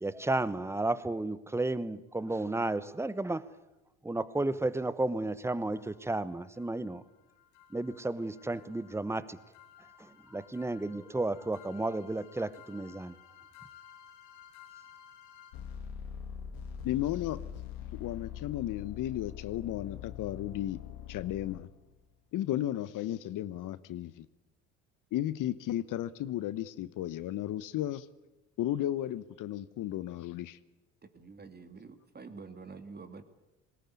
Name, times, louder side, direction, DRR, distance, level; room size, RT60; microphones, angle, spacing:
voice 1, 0.0-3.5 4.0-7.0 7.7-9.4 10.3-13.1, right 2 dB, 5° right, 1.0 m, -32 dB
sound 1, 5.8-5.9 6.6-6.7 7.0-7.1 7.6-22.0, left 9 dB, 70° left, 2.1 m, -46 dB
voice 2, 16.8-17.4 18.0-20.8 21.1-21.7 22.3-24.3 25.1-28.1 28.6-30.6, left 13 dB, 55° left, 1.0 m, -34 dB
voice 3, 31.1-33.2, right 4 dB, 25° right, 2.4 m, -47 dB
20.0 x 18.0 x 9.5 m
hypercardioid pair, 70°, 38 cm